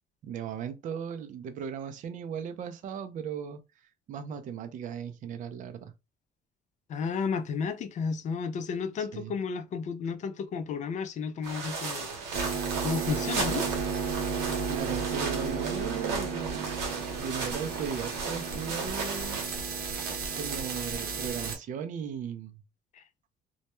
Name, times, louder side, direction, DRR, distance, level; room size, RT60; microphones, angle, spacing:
voice 1, 0.2-5.9 9.1-9.3 14.7-16.8 17.2-19.4 20.3-22.6, right 7 dB, 50° right, 0.4 m, -37 dB
voice 2, 6.9-12.1 12.8-13.7 22.9-23.0, left 5 dB, 45° left, 0.4 m, -32 dB
sound 1, 11.4-19.4, right 4 dB, 90° right, 0.9 m, -35 dB
sound 2, 12.3-21.5, right 5 dB, 65° right, 0.8 m, -33 dB
2.1 x 2.1 x 2.9 m
cardioid pair, 110°, 17 cm